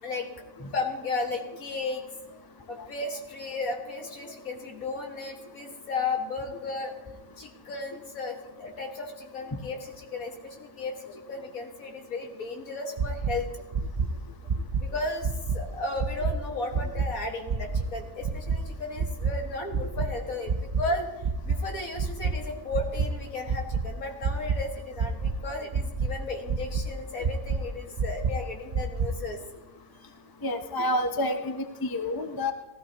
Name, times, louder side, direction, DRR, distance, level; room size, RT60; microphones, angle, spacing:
voice 1, 0.0-2.4 2.7-6.9 7.4-13.5 14.8-21.1 21.5-29.4 29.7-29.8, left 3 dB, 65° left, 2 dB, 2.1 m, -34 dB
sound 1, 13.0-13.3 13.7-14.1 14.5-14.8 15.2-15.6 16.0-16.3 16.7-17.1 17.5-17.8 18.2-18.6 19.0-19.3 19.7-20.1 20.5-20.8 21.2-21.6 22.0-22.3 22.7-23.1 23.5-23.8 24.2-24.6 25.0-25.3 25.7-26.1 26.5-26.8 27.2-27.6 28.0-28.3 28.7-29.1, right 6 dB, 50° right, 0.5 m, -26 dB
voice 2, 30.4-32.5, left 1 dB, 25° left, 7 dB, 0.5 m, -28 dB
16.5 x 14.0 x 2.9 m, 1.1 s
omnidirectional pair, 1.6 m